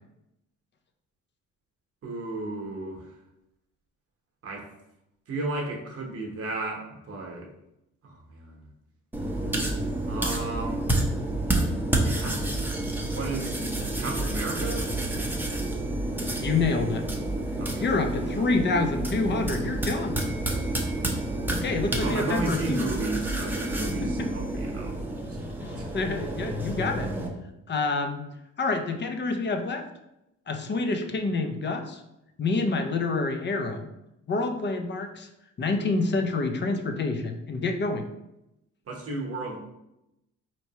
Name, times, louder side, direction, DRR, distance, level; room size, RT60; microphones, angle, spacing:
voice 1, 2.0-3.0 4.4-4.7 5.3-7.5 8.0-8.7 10.1-10.8 12.0-12.7 13.0-13.6 14.0-14.9 17.6-17.9 18.3-18.4 22.0-25.0 25.3-25.5 25.8-25.9 38.9-39.6, right 2 dB, 50° right, 1 dB, 0.9 m, -34 dB
sound 1, 9.1-27.3, right 1 dB, 5° right, 0.6 m, -29 dB
voice 2, 16.4-17.0 17.8-20.2 21.5-22.9 23.9-24.3 25.6-27.1 27.7-28.2 28.6-29.8 30.5-32.0 32.4-33.9 34.3-35.3 35.6-38.1, left 3 dB, 35° left, 6 dB, 0.6 m, -27 dB
4.4 x 3.0 x 2.8 m, 0.87 s
cardioid pair, 90°, 30 cm